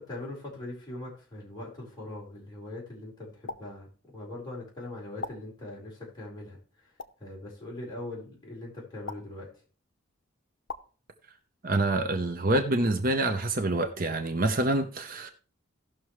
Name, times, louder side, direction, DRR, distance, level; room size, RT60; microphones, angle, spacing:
voice 1, 0.0-6.6 7.2-9.5, left 2 dB, 20° left, -5 dB, 4.4 m, -41 dB
sound 1, 3.5-3.6 5.2-5.3 7.0-7.1 9.0-9.2 10.7-10.8 12.5-12.7, left 4 dB, 65° left, 0.8 m, -37 dB
voice 2, 11.6-15.3, right 2 dB, 45° right, 6 dB, 0.8 m, -26 dB
16.5 x 6.1 x 3.2 m, 0.38 s
head